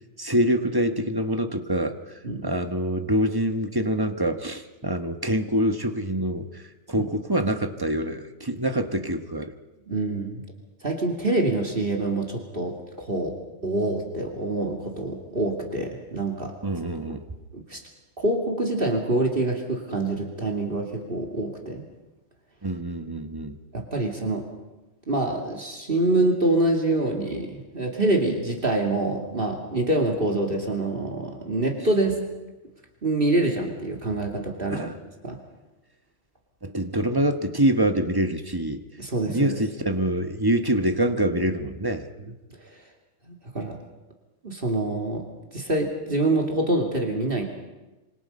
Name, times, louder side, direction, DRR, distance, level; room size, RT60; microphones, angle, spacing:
voice 1, 0.2-2.0 2.4-6.6 6.9-9.5 16.6-17.2 22.6-23.6 34.7-35.0 36.6-38.8 39.3-42.1, right 1 dB, 20° right, 7 dB, 1.3 m, -25 dB
voice 2, 9.9-10.4 10.8-13.3 13.6-16.5 17.5-17.8 18.2-21.8 23.7-24.4 25.1-32.2 33.0-34.9 35.2-35.4 39.0-39.6 42.6-42.8 43.3-43.8 44.4-45.2 45.5-47.4, right 2 dB, 45° right, 1 dB, 2.7 m, -26 dB
26.5 x 25.0 x 5.4 m, 1.1 s
omnidirectional pair, 1.3 m